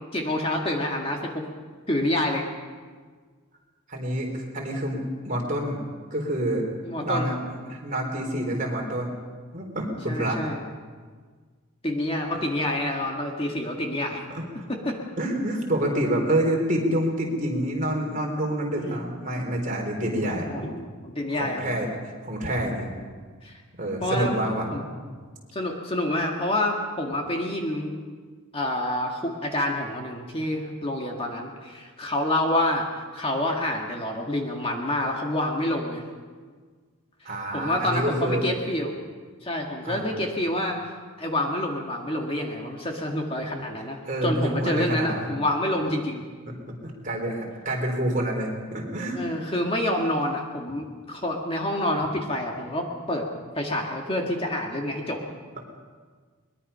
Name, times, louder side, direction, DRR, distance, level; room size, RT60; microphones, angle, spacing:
voice 1, 0.1-1.4 1.9-2.5 6.8-7.4 10.1-10.6 11.8-14.2 14.7-15.0 18.7-19.0 20.2-21.6 23.4-23.6 24.0-24.3 24.7-24.8 25.5-27.9 28.5-32.9 33.1-36.0 37.5-38.9 39.4-40.8 41.2-46.2 49.1-53.3 53.6-55.2, left 1 dB, 25° left, 1 dB, 1.9 m, -27 dB
voice 2, 3.9-5.0 5.2-5.8 6.1-6.7 7.0-9.1 9.5-10.4 14.3-14.7 15.2-20.5 21.3-22.9 23.8-24.7 37.2-38.5 39.8-40.1 44.1-45.3 46.8-49.2, right 1 dB, 35° right, 0 dB, 3.9 m, -27 dB
22.5 x 21.5 x 5.7 m, 1.5 s
head